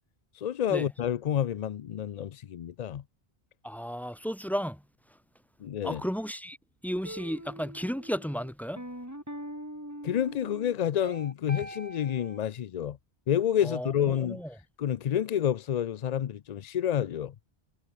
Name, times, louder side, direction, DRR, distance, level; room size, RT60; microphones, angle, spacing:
voice 1, 0.3-3.0 5.6-6.0 10.0-13.0 13.3-14.4 14.8-17.3, left 10 dB, 55° left, 0.5 m, -29 dB
voice 2, 3.6-4.8 5.8-6.6 6.8-8.8 13.6-14.5, equal, ahead, 3.7 m, -34 dB
sound 1, 7.0-12.4, equal, 15° right, 7.5 m, -42 dB
omnidirectional pair, 1.1 m